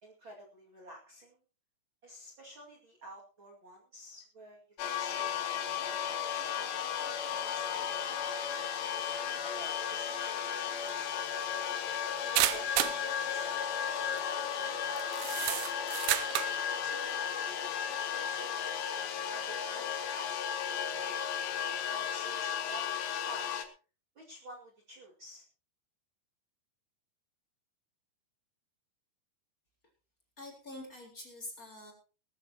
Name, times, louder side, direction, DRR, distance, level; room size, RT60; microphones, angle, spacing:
voice 1, 0.0-1.4 2.0-6.8 7.3-8.0 9.1-11.6 12.2-12.8 13.2-15.7 16.8-18.0 18.3-18.8 19.3-21.2 21.9-23.5 24.1-25.4, right 1 dB, 40° right, -2 dB, 2.8 m, -51 dB
sound 1, 4.8-23.6, left 8 dB, 80° left, 3.2 m, -34 dB
sound 2, 10.9-11.0 12.4-13.0 14.0-14.2 15.0-16.6, right 14 dB, 75° right, 2.0 m, -30 dB
voice 2, 30.4-31.9, left 1 dB, 25° left, 0 dB, 4.3 m, -46 dB
19.5 x 14.0 x 2.9 m, 0.35 s
omnidirectional pair, 4.1 m